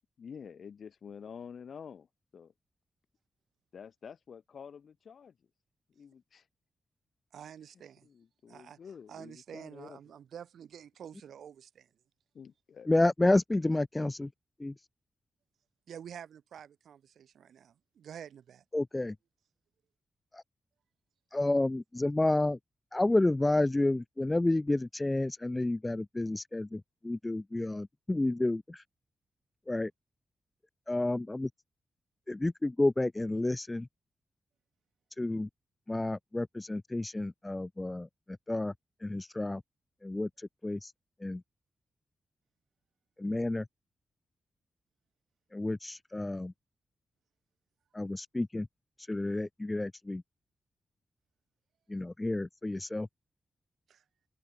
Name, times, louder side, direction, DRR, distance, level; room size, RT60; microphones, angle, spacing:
voice 1, 0.2-2.1 2.3-2.5 3.7-5.3 6.0-6.4 8.0-10.0 12.3-12.9, left 7 dB, 70° left, 4.7 m, -48 dB
voice 2, 7.3-8.1 8.5-8.8 9.1-11.9 15.9-18.6 53.9-54.0, right 8 dB, 85° right, 2.2 m, -48 dB
voice 3, 12.9-14.3 14.6-14.7 18.7-19.1 20.3-20.4 21.3-22.6 22.9-28.8 29.7-29.9 30.9-31.5 32.3-33.9 35.2-35.5 35.9-38.1 38.5-38.7 39.0-39.6 40.0-40.9 41.2-41.4 43.2-43.7 45.5-46.5 47.9-48.7 49.0-50.2 51.9-53.1, left 2 dB, 20° left, 0.5 m, -30 dB
open air
cardioid pair, 80°, 0 cm